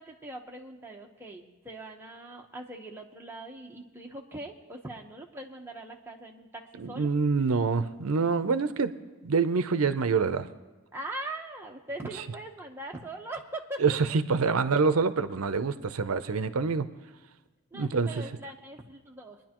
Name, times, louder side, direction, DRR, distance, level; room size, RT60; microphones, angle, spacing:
voice 1, 0.0-7.1 10.9-14.4 17.7-19.4, right 1 dB, 10° right, 0 dB, 1.1 m, -41 dB
voice 2, 6.8-8.9 9.2-10.5 13.8-16.9 17.7-18.1, right 4 dB, 70° right, 12 dB, 0.6 m, -26 dB
22.5 x 10.5 x 3.0 m, 1.3 s
head